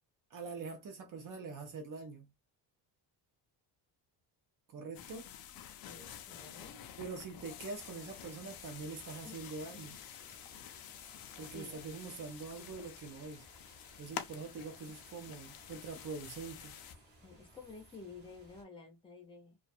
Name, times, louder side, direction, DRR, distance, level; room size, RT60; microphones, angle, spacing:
voice 1, 0.3-2.3 4.7-5.3 7.0-10.0 11.4-13.5 14.0-16.7, right 4 dB, 45° right, 0.7 m, -44 dB
sound 1, 4.9-16.9, left 10 dB, 55° left, 0.5 m, -49 dB
voice 2, 5.8-6.9 9.2-9.4 9.7-9.9 11.5-11.8 17.2-19.6, left 4 dB, 10° left, 0.6 m, -52 dB
sound 2, 7.8-18.6, right 1 dB, 25° right, 0.9 m, -61 dB
2.4 x 2.3 x 2.5 m
cardioid pair, 165°, 44 cm